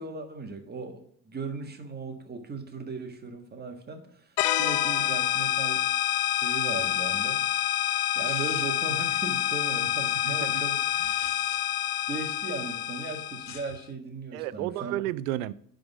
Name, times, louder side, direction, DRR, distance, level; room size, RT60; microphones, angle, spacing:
voice 1, 0.0-5.8 6.3-7.4 7.9-10.8 12.1-15.0, right 4 dB, 20° right, 1.5 m, -37 dB
sound 1, 4.4-13.8, left 14 dB, 50° left, 0.6 m, -27 dB
sound 2, 8.2-8.9 10.8-11.6 13.3-13.8, left 6 dB, 35° left, 1.3 m, -46 dB
voice 2, 10.3-10.6 11.0-11.3 14.3-15.5, right 14 dB, 65° right, 0.5 m, -33 dB
10.5 x 3.9 x 6.1 m
figure-of-eight pair, 60°, 46 cm